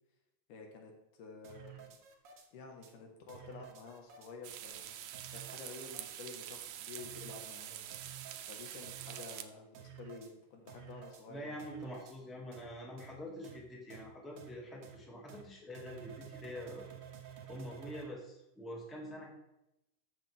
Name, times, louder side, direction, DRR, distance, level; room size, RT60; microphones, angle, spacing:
voice 1, 0.5-0.9 1.2-1.9 2.5-5.0 5.3-8.0 8.5-11.6, left 4 dB, 90° left, 2 dB, 3.1 m, -50 dB
sound 1, 1.4-2.5 2.8-2.9 3.3-4.3 4.7-4.8 5.1-6.2 6.5-6.6 7.0-7.5 7.9-8.5 8.8-9.4 9.7-10.3 10.7-11.2 11.6-12.2 12.5-12.7 13.0-13.1 13.4-13.6 13.9-14.0 14.4-14.5 14.8-15.0 15.3-15.4 15.7-18.1, right 9 dB, 60° right, 1.3 m, -52 dB
sound 2, 4.4-9.4, right 11 dB, 75° right, 1.6 m, -46 dB
voice 2, 11.3-16.9 17.5-19.3, equal, ahead, -2 dB, 1.6 m, -46 dB
13.5 x 6.9 x 3.5 m, 0.88 s
omnidirectional pair, 3.5 m